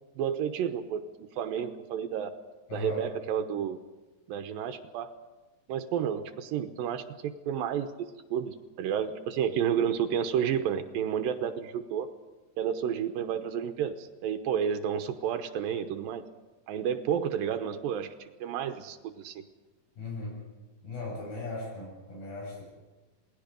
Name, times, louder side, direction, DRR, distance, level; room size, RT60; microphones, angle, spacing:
voice 1, 0.2-2.3 2.7-3.8 4.3-5.1 5.7-12.1 12.6-16.2 16.7-19.4, right 8 dB, 85° right, 7 dB, 2.6 m, -31 dB
voice 2, 2.7-3.0 20.0-20.4 20.8-22.6, left 3 dB, 90° left, -2 dB, 9.3 m, -37 dB
27.5 x 19.0 x 5.2 m, 1.2 s
omnidirectional pair, 4.1 m